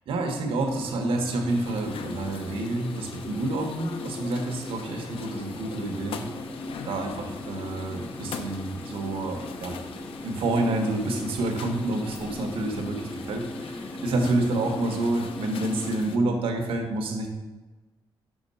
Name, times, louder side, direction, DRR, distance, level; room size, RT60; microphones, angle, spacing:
voice 1, 0.1-6.2 6.8-9.8 10.2-17.3, right 2 dB, 90° right, 4 dB, 1.3 m, -28 dB
sound 1, 0.6-16.0, left 2 dB, 20° left, 0.4 m, -39 dB
sound 2, 1.5-16.2, left 5 dB, 85° left, 0.7 m, -42 dB
6.4 x 6.1 x 5.5 m, 1.2 s
cardioid pair, 135°, 9 cm